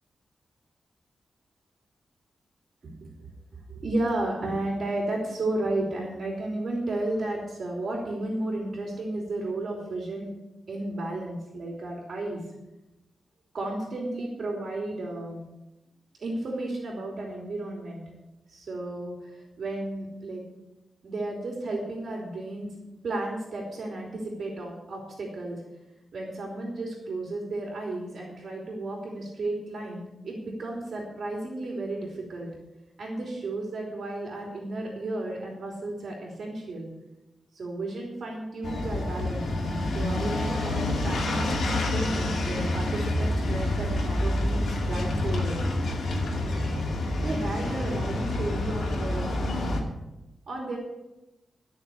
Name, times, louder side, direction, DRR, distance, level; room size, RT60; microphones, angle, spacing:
voice 1, 3.7-10.3 10.7-12.4 13.5-15.4 16.2-18.0 18.5-20.4 21.0-22.7 23.0-25.6 26.1-32.5 33.0-36.9 37.5-39.5 39.9-45.6 47.2-49.4 50.5-50.8, right 2 dB, 55° right, -1 dB, 3.2 m, -33 dB
sound 1, 38.6-49.8, left 1 dB, 85° left, 2.8 m, -28 dB
13.5 x 6.7 x 8.5 m, 0.97 s
wide cardioid pair, 165°, 0 cm